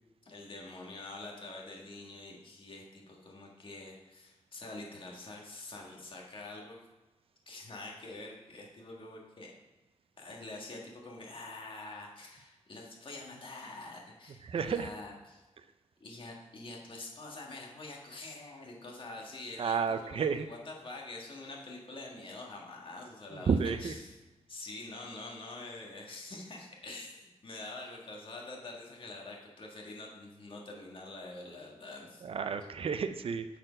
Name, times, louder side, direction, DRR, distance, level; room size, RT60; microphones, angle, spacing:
voice 1, 0.2-6.8 7.5-9.5 10.2-15.4 16.0-23.5 23.8-24.1 24.5-32.3, left 2 dB, 45° left, -1 dB, 1.6 m, -46 dB
voice 2, 14.4-14.9 19.6-20.5 23.3-23.9 32.2-33.5, right 6 dB, 50° right, 10 dB, 0.4 m, -31 dB
7.9 x 4.4 x 5.1 m, 1.1 s
wide cardioid pair, 110°, 12 cm